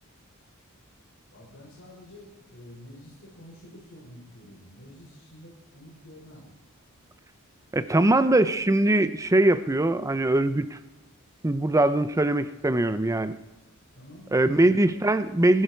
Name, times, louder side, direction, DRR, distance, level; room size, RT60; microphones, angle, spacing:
voice 1, 1.3-6.5 14.0-15.1, left 1 dB, 60° left, -7 dB, 5.3 m, -49 dB
voice 2, 7.7-10.8 11.4-13.3 14.3-15.6, right 1 dB, 15° right, 13 dB, 0.5 m, -22 dB
24.0 x 11.5 x 4.5 m, 1.1 s
head